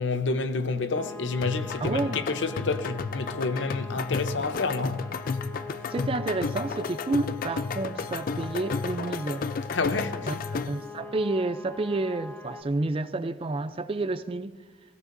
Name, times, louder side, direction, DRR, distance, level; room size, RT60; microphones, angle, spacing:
voice 1, 0.0-5.1 9.7-10.5, left 3 dB, 75° left, 0.8 m, -29 dB
sound 1, 0.9-12.6, left 3 dB, 15° left, 1.7 m, -43 dB
sound 2, 1.4-10.9, left 4 dB, 50° left, 0.4 m, -33 dB
voice 2, 1.8-2.3 5.9-9.5 10.3-10.4 10.7-14.6, right 2 dB, 30° right, 0.4 m, -30 dB
17.5 x 16.5 x 2.6 m
head